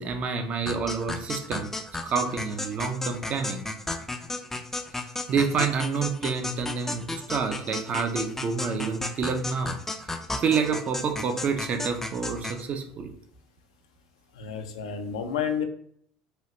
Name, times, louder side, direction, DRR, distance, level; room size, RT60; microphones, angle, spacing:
voice 1, 0.0-1.7 2.0-3.6 5.3-9.8 10.4-13.1, right 5 dB, 45° right, 6 dB, 0.5 m, -28 dB
sound 1, 0.7-12.6, left 2 dB, 10° left, 0.4 m, -34 dB
voice 2, 14.4-15.6, left 7 dB, 90° left, 6 dB, 0.4 m, -30 dB
3.1 x 2.4 x 2.9 m, 0.65 s
hypercardioid pair, 85°, 3 cm